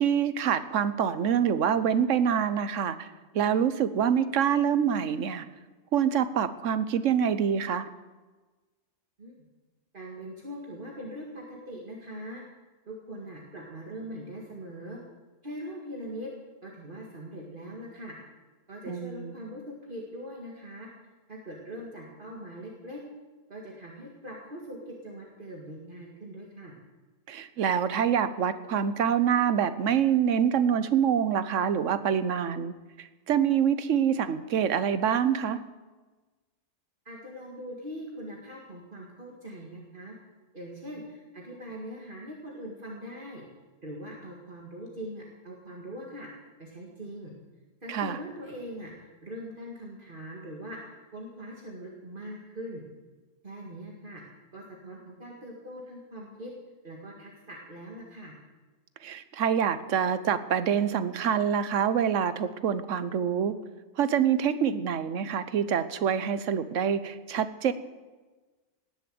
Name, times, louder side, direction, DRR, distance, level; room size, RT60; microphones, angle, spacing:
voice 1, 0.0-3.1 3.3-5.5 5.9-7.9 18.9-19.3 27.3-35.6 47.9-48.2 59.0-63.6 64.0-67.7, right 8 dB, 90° right, 13 dB, 1.2 m, -26 dB
voice 2, 9.9-12.4 12.9-15.0 15.4-16.3 16.6-18.1 18.7-20.9 21.3-23.0 23.5-26.8 37.1-40.1 40.5-43.5 43.8-46.3 46.6-47.3 47.8-50.8 51.1-52.8 53.4-54.2 54.5-56.5 56.8-58.3, equal, 45° right, -2 dB, 2.0 m, -41 dB
19.0 x 7.1 x 7.7 m, 1.3 s
omnidirectional pair, 1.3 m